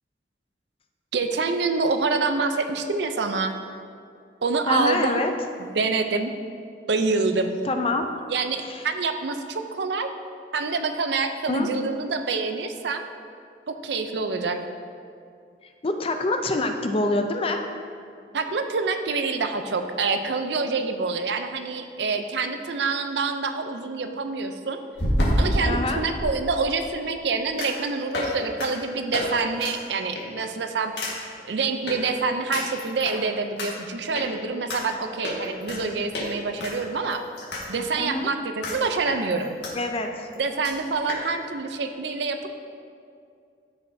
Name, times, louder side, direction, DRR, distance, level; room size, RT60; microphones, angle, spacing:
voice 1, 1.1-3.6 4.4-5.2 5.7-6.3 6.9-7.6 8.3-10.1 10.5-13.1 13.7-14.6 18.3-24.8 25.4-30.9 31.4-37.2 37.7-39.6 40.4-42.5, right 4 dB, 75° right, 7 dB, 0.5 m, -26 dB
voice 2, 4.7-5.3 7.6-8.1 8.6-8.8 11.5-11.7 15.6-17.6 25.6-26.0 37.9-38.3 39.7-40.3, left 2 dB, 30° left, 5 dB, 0.5 m, -26 dB
sound 1, 22.5-22.6 25.0-26.3 27.6-27.8 28.1-28.3 28.6-28.7 29.1-29.3 29.6-29.7 30.1-30.4 31.0-31.1 31.9-32.0 32.5-33.2 33.6-33.7 34.1-34.3 34.7-34.8 35.2-35.8 36.1-36.3 36.6-37.6 37.9-38.0 38.6-38.8 39.1-39.7 40.0-40.1 40.3-40.4 40.6-40.7 41.1-41.2, left 1 dB, 75° left, 1.7 m, -27 dB
13.5 x 5.3 x 2.7 m, 2.4 s
head